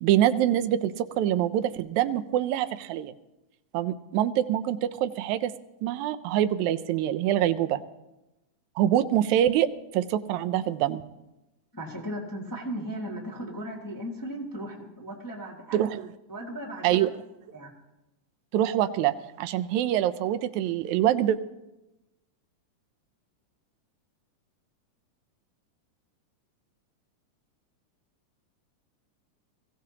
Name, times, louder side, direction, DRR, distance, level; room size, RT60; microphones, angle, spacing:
voice 1, 0.0-3.1 3.7-5.5 5.8-7.8 8.8-11.1 15.7-16.1 16.8-17.1 18.5-21.4, right 11 dB, 80° right, 10 dB, 1.9 m, -25 dB
voice 2, 11.7-15.8 16.3-17.1 17.5-17.7, right 1 dB, 10° left, -2 dB, 1.0 m, -36 dB
21.0 x 15.5 x 2.9 m, 0.97 s
omnidirectional pair, 3.6 m